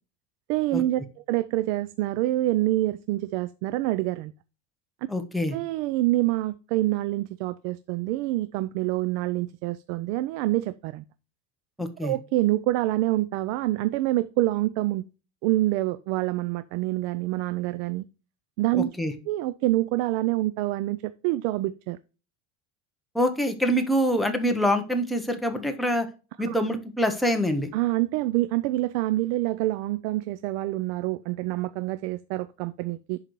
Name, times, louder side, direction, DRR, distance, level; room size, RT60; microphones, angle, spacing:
voice 1, 0.5-1.0 1.3-4.3 5.5-11.0 12.0-15.0 15.4-18.0 18.6-18.9 19.3-22.0 26.5-26.6 27.7-33.2, right 17 dB, 85° right, 0.5 m, -26 dB
voice 2, 5.1-5.6 11.8-12.1 18.8-19.1 23.1-26.1 26.4-27.7, equal, ahead, 0.7 m, -25 dB
11.0 x 4.0 x 3.0 m
cardioid pair, 160°, 36 cm